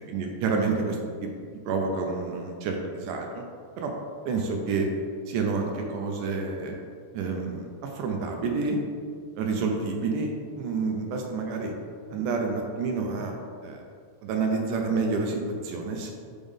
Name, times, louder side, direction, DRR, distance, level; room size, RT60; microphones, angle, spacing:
voice 1, 0.1-1.3 1.7-3.5 3.8-3.9 4.3-4.9 5.3-6.8 7.1-8.8 9.4-11.7 12.1-13.3 13.6-13.8 14.2-16.1, right 4 dB, 80° right, 2 dB, 2.1 m, -29 dB
5.3 x 5.2 x 3.5 m, 2.1 s
omnidirectional pair, 3.7 m